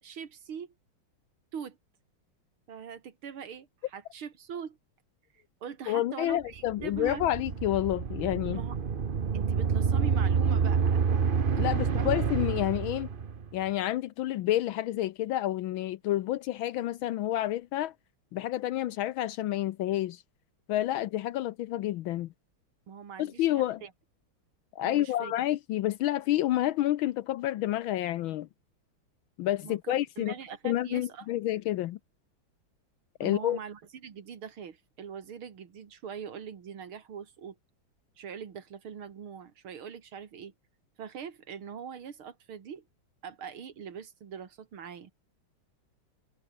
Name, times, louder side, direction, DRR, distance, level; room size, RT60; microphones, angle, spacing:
voice 1, 0.0-0.7 1.5-1.8 2.7-4.8 5.3-7.3 8.5-8.8 9.3-11.3 11.6-11.7 12.0-12.2 22.9-23.9 24.8-25.3 29.6-31.3 33.2-37.6 38.2-40.5 41.0-42.8 43.2-45.1, right 7 dB, 85° right, 2.9 m, -42 dB
voice 2, 5.9-8.6 11.6-13.1 13.5-17.9 18.3-20.2 20.7-22.3 23.2-23.8 24.7-28.5 29.4-30.3 30.6-32.0 33.2-33.6, left 14 dB, 75° left, 1.5 m, -29 dB
sound 1, 6.6-13.5, right 6 dB, 40° right, 0.8 m, -28 dB
omnidirectional pair, 2.3 m